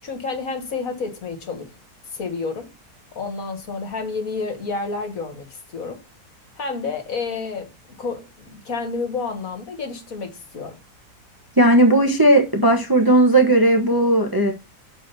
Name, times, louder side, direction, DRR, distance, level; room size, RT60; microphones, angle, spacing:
voice 1, 0.0-1.7 2.1-2.7 3.2-6.0 6.6-7.7 8.0-10.8, left 4 dB, 55° left, 1.9 m, -30 dB
voice 2, 11.6-14.5, right 1 dB, 15° right, 1.0 m, -16 dB
6.3 x 4.9 x 6.7 m
omnidirectional pair, 1.8 m